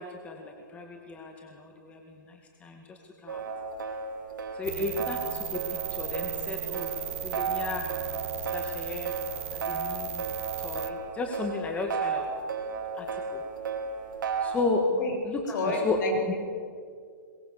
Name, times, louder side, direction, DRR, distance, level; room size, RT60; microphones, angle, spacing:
voice 1, 0.0-3.4 4.5-6.9 7.2-7.9 8.5-9.1 9.5-10.2 10.6-12.3 12.9-13.4 14.4-14.9 15.2-16.0 16.3-16.4, left 3 dB, 10° left, 2 dB, 2.1 m, -34 dB
sound 1, 3.3-14.6, right 5 dB, 70° right, 4.3 m, -34 dB
sound 2, 4.6-10.9, right 13 dB, 45° right, 1.2 m, -36 dB
voice 2, 15.5-16.4, left 2 dB, 60° left, 1 dB, 7.5 m, -30 dB
23.0 x 22.5 x 7.3 m, 2.1 s
hypercardioid pair, 150°, 11 cm